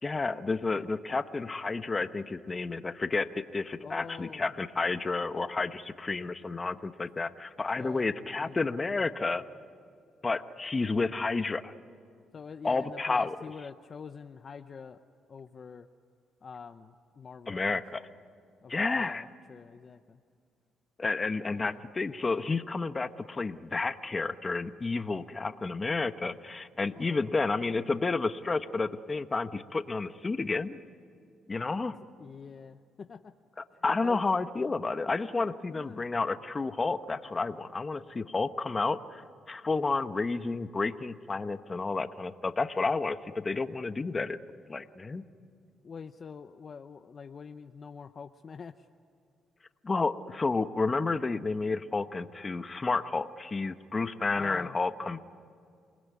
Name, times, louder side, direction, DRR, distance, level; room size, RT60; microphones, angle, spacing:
voice 1, 0.0-9.4 10.2-11.7 12.6-13.3 17.5-18.1 18.7-19.3 21.0-30.8 31.5-31.9 33.8-44.4 44.7-45.2 49.8-55.2, left 3 dB, 30° left, 10 dB, 1.1 m, -31 dB
voice 2, 3.8-4.5 7.8-8.1 8.3-8.6 12.3-15.0 15.3-15.9 16.4-17.8 18.6-20.2 21.4-21.8 26.9-27.4 32.2-33.3 33.7-34.2 35.7-36.0 45.8-48.9 54.3-54.8, left 6 dB, 45° left, 9 dB, 0.8 m, -46 dB
28.0 x 20.5 x 9.6 m, 2.4 s
cardioid pair, 90°, 0 cm